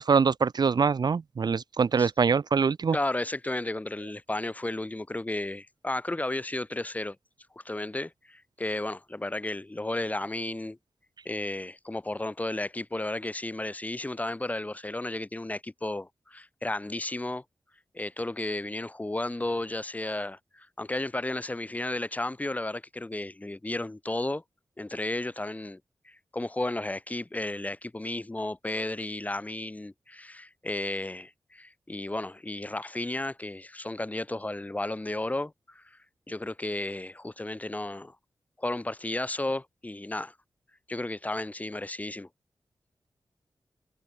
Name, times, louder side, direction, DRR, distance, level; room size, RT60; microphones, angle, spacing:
voice 1, 0.0-3.0, right 5 dB, 65° right, 1.7 m, -24 dB
voice 2, 2.9-7.2 7.6-10.8 11.3-17.4 17.9-24.4 24.8-25.8 26.0-35.8 36.3-38.2 38.6-40.3 40.9-42.3, left 2 dB, 20° left, 7.4 m, -33 dB
wide cardioid pair, 105°, 8 cm